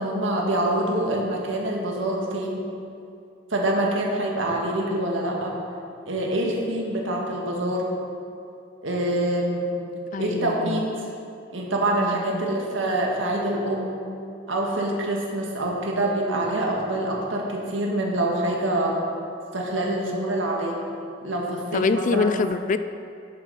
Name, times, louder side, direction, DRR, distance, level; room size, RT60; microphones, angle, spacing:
voice 1, 0.0-2.6 3.5-5.5 6.1-7.9 8.8-9.8 10.2-10.9 11.5-14.0 14.5-19.0 19.5-20.8 21.2-22.3, right 1 dB, 80° right, -1 dB, 1.6 m, -25 dB
voice 2, 10.1-10.8 11.9-12.5 19.9-20.2 21.7-22.8, left 4 dB, 40° left, 12 dB, 0.4 m, -26 dB
11.0 x 8.1 x 4.1 m, 2.6 s
head